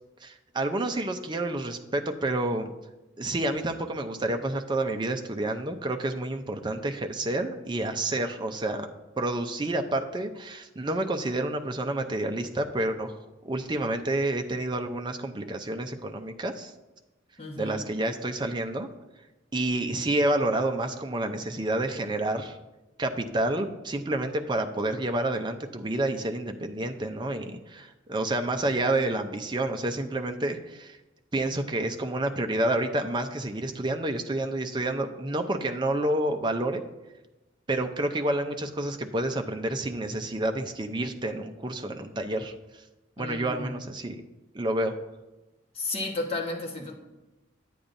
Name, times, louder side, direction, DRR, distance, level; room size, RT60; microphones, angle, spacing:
voice 1, 0.2-2.7 3.2-8.9 9.2-13.2 13.4-16.7 17.6-18.9 19.5-22.6 23.0-31.0 31.3-36.8 37.7-42.5 43.2-44.2 44.5-45.0, right 1 dB, 25° right, 5 dB, 0.5 m, -29 dB
voice 2, 17.4-17.9 43.2-43.7 45.7-46.9, left 2 dB, 30° left, -2 dB, 1.3 m, -33 dB
9.8 x 8.5 x 2.6 m, 1.0 s
head